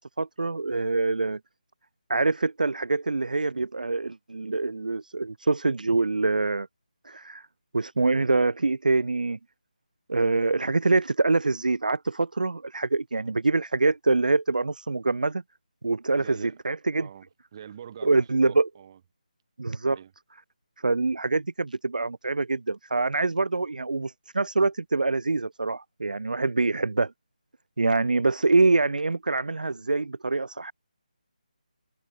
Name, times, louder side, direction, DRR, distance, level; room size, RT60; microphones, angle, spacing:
voice 1, 0.0-1.4 2.1-6.7 7.1-7.4 7.7-9.4 10.1-15.4 15.8-17.1 18.0-18.7 19.6-20.0 20.8-27.1 27.8-30.7, right 3 dB, 80° right, 0.4 m, -25 dB
voice 2, 16.2-16.6 17.0-19.0 19.9-20.1, right 9 dB, 30° right, 1.7 m, -45 dB
figure-of-eight pair, 160°, 4 cm